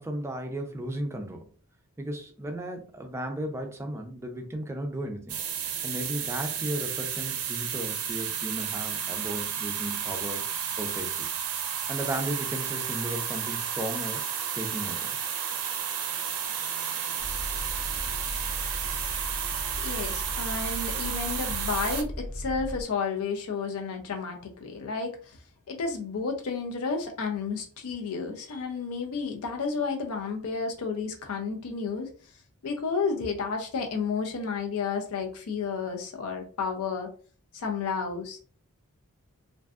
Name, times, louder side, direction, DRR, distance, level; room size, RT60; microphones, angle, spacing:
voice 1, 0.0-1.5 2.0-5.4 5.8-10.4 10.8-11.3 11.9-14.2 14.5-15.2, right 1 dB, 10° right, 3 dB, 0.4 m, -35 dB
Endless Shower Delta w, 5.3-22.0, right 8 dB, 70° right, 0.4 m, -32 dB
sound 1, 17.2-22.8, equal, 40° left, 0.7 m, -37 dB
voice 2, 19.8-25.4 25.7-32.1 32.6-37.1 37.5-38.4, left 5 dB, 70° left, 4 dB, 0.4 m, -31 dB
2.5 x 2.2 x 2.3 m, 0.41 s
head